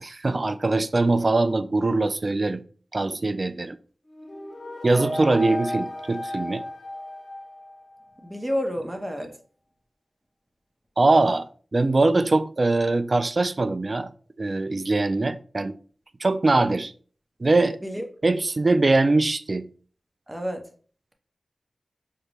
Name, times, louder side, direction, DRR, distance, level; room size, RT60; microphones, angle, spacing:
voice 1, 0.0-2.6 2.9-3.8 4.8-6.6 11.0-11.5 11.7-14.1 14.4-15.8 16.2-16.9 17.4-17.8 18.2-19.7, right 2 dB, 50° right, 0.3 m, -22 dB
sound 1, 4.1-8.0, left 1 dB, 75° left, 0.8 m, -34 dB
voice 2, 8.2-9.3 17.8-18.0 20.3-20.6, equal, 15° right, 0.8 m, -29 dB
5.1 x 2.1 x 3.0 m
cardioid pair, 45°, 0 cm